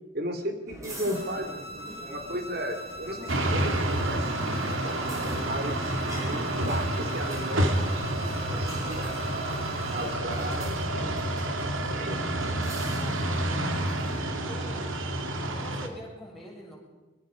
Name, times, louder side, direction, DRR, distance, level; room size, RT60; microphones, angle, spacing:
voice 1, 0.1-1.7 2.0-5.0 5.4-5.9 6.2-11.3 11.6-12.5, equal, 50° right, 7 dB, 2.9 m, -36 dB
sound 1, 0.7-14.2, right 1 dB, 15° right, 5.0 m, -43 dB
sound 2, 1.1-10.1, equal, 30° right, 4.2 m, -42 dB
sound 3, 3.3-15.9, right 1 dB, 90° right, 2.7 m, -29 dB
voice 2, 12.9-15.1 15.5-16.8, equal, ahead, -5 dB, 6.4 m, -45 dB
23.5 x 21.5 x 5.2 m, 1.2 s
head